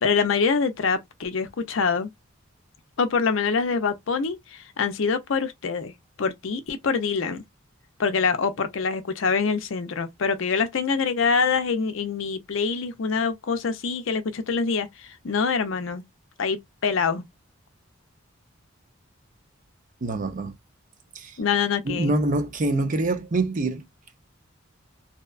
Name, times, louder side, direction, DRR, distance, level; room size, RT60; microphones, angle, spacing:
voice 1, 0.0-2.1 3.0-5.9 6.2-7.4 8.0-16.0 16.4-17.2 21.4-22.1, left 5 dB, 65° left, 0.5 m, -25 dB
voice 2, 20.0-20.5 21.1-21.4 21.9-23.8, right 2 dB, 40° right, 0.5 m, -25 dB
2.7 x 2.2 x 2.3 m
head